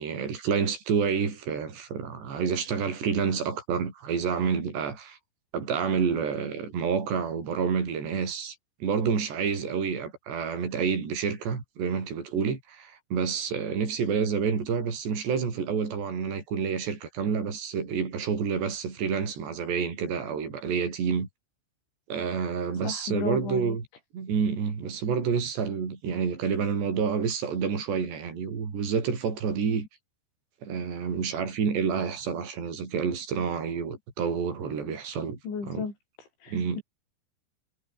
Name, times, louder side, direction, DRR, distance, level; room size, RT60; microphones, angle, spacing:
voice 1, 0.0-5.2 5.5-8.6 8.8-21.3 22.1-23.8 24.1-29.9 30.6-35.4 35.7-35.8 36.5-36.8, right 6 dB, 70° right, 7.6 m, -28 dB
voice 2, 22.8-23.8 34.6-34.8 35.4-35.9 36.4-36.8, left 5 dB, 85° left, 8.8 m, -34 dB
omnidirectional pair, 5.2 m